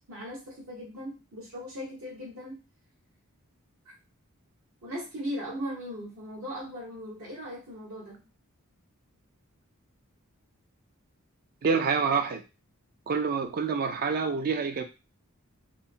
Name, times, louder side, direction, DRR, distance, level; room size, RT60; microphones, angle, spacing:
voice 1, 0.1-2.6 3.8-3.9 4.8-8.2, equal, 70° right, -6 dB, 1.2 m, -38 dB
voice 2, 11.6-12.4 13.1-14.8, right 5 dB, 45° right, 7 dB, 0.4 m, -27 dB
2.8 x 2.0 x 2.6 m, 0.29 s
head